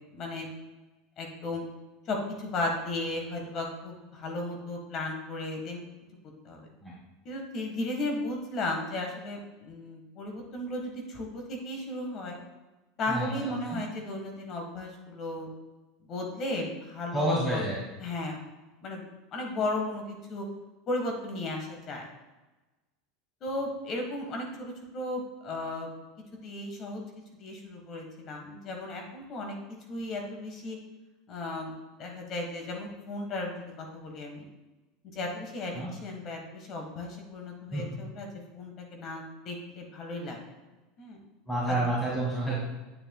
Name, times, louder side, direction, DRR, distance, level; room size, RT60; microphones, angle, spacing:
voice 1, 0.1-0.5 1.2-1.6 2.1-5.8 6.4-6.7 7.2-12.4 13.0-15.5 16.1-17.6 18.0-18.4 18.8-19.0 19.3-20.4 20.9-22.1 23.4-25.9 26.3-27.0 27.4-29.6 29.9-30.8 31.3-31.7 32.0-34.4 35.1-38.3 38.5-40.4 41.0-41.2, left 2 dB, 45° left, 2 dB, 1.5 m, -35 dB
voice 2, 13.1-13.8 17.1-17.8 35.7-35.9 37.7-37.8 41.5-42.6, right 1 dB, 10° left, -9 dB, 2.5 m, -29 dB
8.9 x 6.7 x 2.3 m, 1.1 s
supercardioid pair, 105°, 0 cm